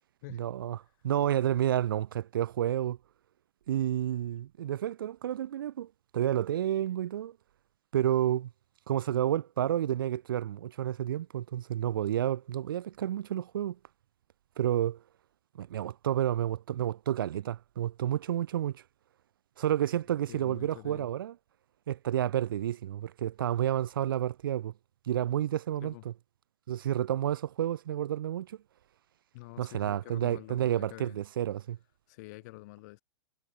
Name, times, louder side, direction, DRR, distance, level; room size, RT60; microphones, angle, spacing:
voice 1, 0.3-0.8 1.0-3.0 3.7-7.4 7.9-8.5 8.9-13.8 14.6-15.0 15.6-18.8 19.6-21.3 21.9-24.7 25.1-26.1 26.7-28.6 29.6-31.8, right 11 dB, 55° right, 0.6 m, -30 dB
voice 2, 20.3-21.1 25.8-26.0 29.3-31.2 32.1-33.0, left 23 dB, 40° left, 2.2 m, -47 dB
figure-of-eight pair, 110°, 14 cm